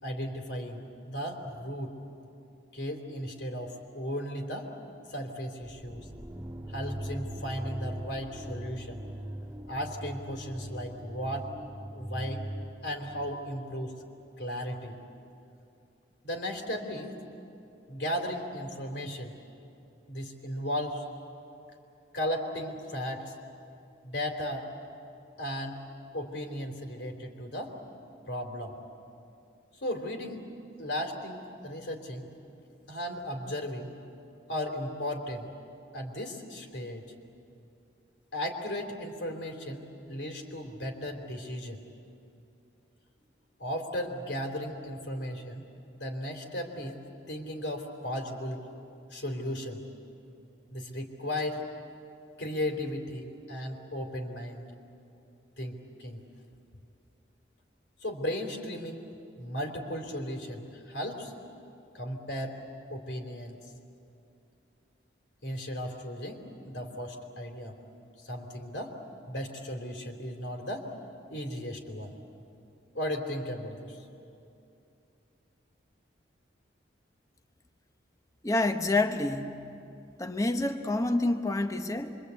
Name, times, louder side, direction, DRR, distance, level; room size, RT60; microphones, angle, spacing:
voice 1, 0.0-2.0 2.7-4.7 5.1-6.1 6.7-9.0 9.7-11.5 11.9-12.4 12.8-14.0 14.4-14.9 16.2-17.2 17.9-19.3 20.1-21.0 22.1-23.3 24.0-24.7 25.4-25.8 26.1-27.8 28.3-28.8 29.8-30.5 30.8-32.3 32.9-33.9 34.5-35.5 35.9-37.1 38.3-41.8 43.6-45.6 45.9-47.0 47.3-48.6 49.1-49.8 50.7-51.7 52.4-54.7 55.6-56.2 58.0-59.0 59.4-61.3 61.9-62.6 62.9-63.6 65.4-67.8 68.2-69.0 69.3-71.0 71.3-72.1 72.9-74.0, equal, 70° left, 3 dB, 3.3 m, -35 dB
sound 1, 5.6-13.5, right 1 dB, 20° right, 1.6 m, -40 dB
voice 2, 78.4-79.7 80.2-82.2, left 2 dB, 20° left, 6 dB, 1.1 m, -28 dB
26.5 x 24.0 x 8.3 m, 2.7 s
head